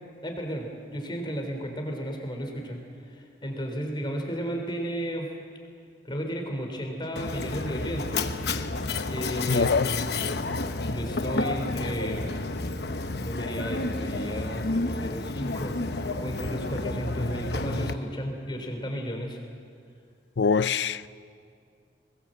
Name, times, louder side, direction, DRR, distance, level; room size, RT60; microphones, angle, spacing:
voice 1, 0.2-2.8 3.1-5.3 6.1-8.4 9.1-9.7 10.9-12.3 13.2-15.7 16.2-19.4, equal, 25° left, 3.7 m, -33 dB
Mechanisms, 7.2-17.9, left 2 dB, 65° left, 1.0 m, -30 dB
voice 2, 9.5-9.9 20.4-21.1, left 5 dB, 90° left, 0.5 m, -23 dB
22.0 x 20.0 x 7.9 m
head